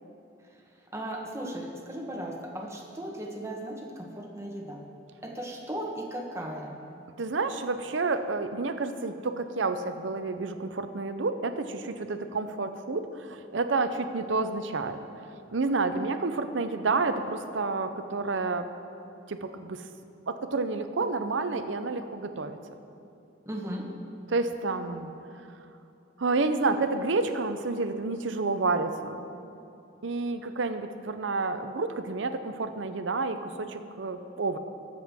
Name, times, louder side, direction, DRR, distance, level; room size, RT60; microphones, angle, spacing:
voice 1, 0.9-4.8 5.2-6.7 23.4-23.9, right 1 dB, 15° right, 0 dB, 1.2 m, -36 dB
voice 2, 7.2-15.0 15.5-18.7 19.3-19.8 20.3-22.6 24.3-25.1 26.2-29.2 30.0-34.6, right 3 dB, 70° right, 9 dB, 0.7 m, -29 dB
20.5 x 7.8 x 3.6 m, 2.7 s
head